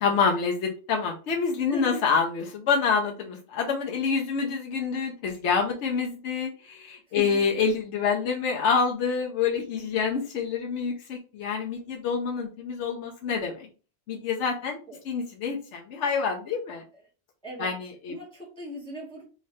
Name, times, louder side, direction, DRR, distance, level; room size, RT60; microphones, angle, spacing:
voice 1, 0.0-13.7 14.1-14.8 15.1-16.8 17.6-18.1, left 5 dB, 85° left, 1 dB, 1.0 m, -27 dB
voice 2, 1.7-2.1 7.1-7.4 14.9-15.0 16.9-17.0 17.4-17.7 18.1-19.2, equal, 5° left, -5 dB, 1.2 m, -38 dB
3.7 x 3.1 x 2.7 m, 0.36 s
omnidirectional pair, 1.2 m